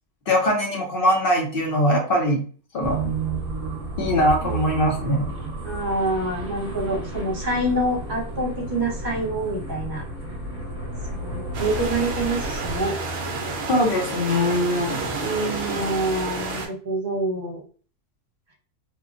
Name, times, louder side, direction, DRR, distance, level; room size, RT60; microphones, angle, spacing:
voice 1, 0.3-2.4 2.7-3.1 4.0-5.3 13.7-15.0, equal, 50° left, -1 dB, 0.8 m, -21 dB
sound 1, 2.8-12.9, right 2 dB, 20° right, 1.3 m, -32 dB
voice 2, 5.6-10.0 11.1-12.9 15.2-17.6, right 1 dB, 35° right, -3 dB, 1.0 m, -26 dB
sound 2, 11.5-16.7, right 3 dB, 55° right, 0.7 m, -30 dB
3.0 x 2.2 x 2.5 m, 0.41 s
omnidirectional pair, 1.5 m